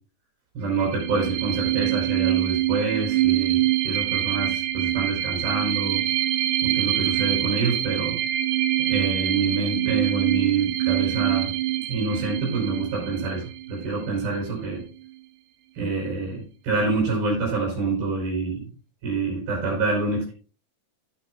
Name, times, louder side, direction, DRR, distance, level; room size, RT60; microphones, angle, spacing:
voice 1, 0.5-6.0 6.6-8.2 8.9-11.5 11.9-14.8 15.8-18.6 19.0-20.3, right 3 dB, 65° right, -4 dB, 6.2 m, -26 dB
sound 1, 0.7-14.1, right 14 dB, 80° right, 3.0 m, -25 dB
14.0 x 9.0 x 2.5 m, 0.36 s
omnidirectional pair, 4.8 m